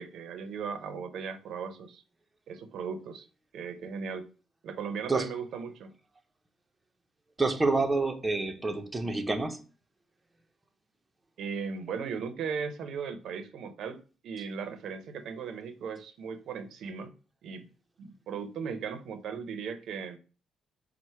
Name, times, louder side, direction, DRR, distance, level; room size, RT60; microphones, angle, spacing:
voice 1, 0.0-2.0 2.5-3.3 3.5-4.3 4.6-5.9 11.4-17.1 17.4-17.6 18.0-20.2, right 6 dB, 75° right, 0.6 m, -37 dB
voice 2, 7.4-9.6, right 3 dB, 20° right, 0.6 m, -28 dB
4.5 x 2.1 x 4.3 m
cardioid pair, 90°, 0 cm